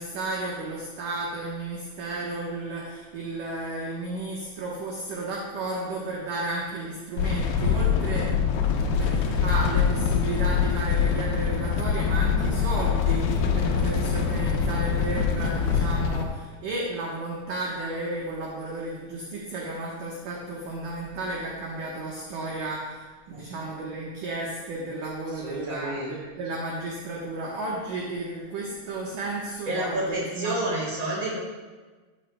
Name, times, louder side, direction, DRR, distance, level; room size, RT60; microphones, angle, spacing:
voice 1, 0.0-8.3 8.6-30.5, right 2 dB, 70° right, -3 dB, 2.1 m, -33 dB
sound 1, 7.2-16.2, left 6 dB, 85° left, 2.1 m, -24 dB
voice 2, 25.3-26.2 29.6-31.4, right 1 dB, 20° right, -4 dB, 2.8 m, -30 dB
14.0 x 9.7 x 2.2 m, 1.4 s
omnidirectional pair, 5.3 m